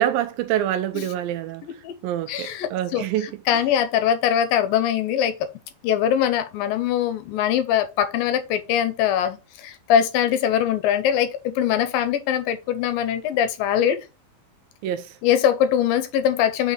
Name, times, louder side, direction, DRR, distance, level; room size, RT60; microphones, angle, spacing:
voice 1, 0.0-1.6 2.0-3.3 14.8-15.1, right 11 dB, 80° right, 2.3 m, -25 dB
voice 2, 1.6-1.9 2.3-5.5 5.8-14.0 15.2-16.7, left 9 dB, 80° left, 2.3 m, -22 dB
6.1 x 4.0 x 5.3 m
omnidirectional pair, 4.3 m